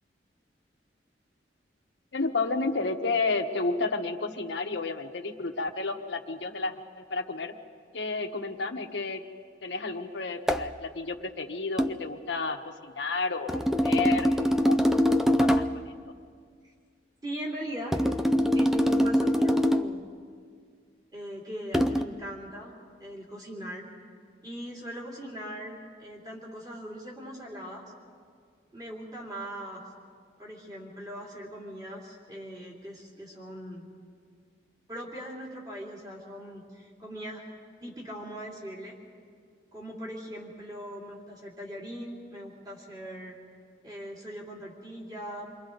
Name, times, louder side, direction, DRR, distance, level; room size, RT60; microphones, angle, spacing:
voice 1, 2.1-7.5 7.9-9.2 9.6-12.6 12.8-14.8 15.3-15.9, left 3 dB, 80° left, 4 dB, 1.2 m, -31 dB
sound 1, 10.5-10.7 11.8-12.0 13.5-15.8 17.9-20.0 21.7-22.0, equal, ahead, 0.5 m, -23 dB
voice 2, 17.2-17.9 18.5-20.0 21.1-23.9 24.4-27.8 28.7-29.8 30.4-33.9 34.9-37.4 37.8-38.9 39.7-43.4 43.8-45.5, equal, 20° right, -3 dB, 3.0 m, -40 dB
28.5 x 23.0 x 3.9 m, 2.1 s
head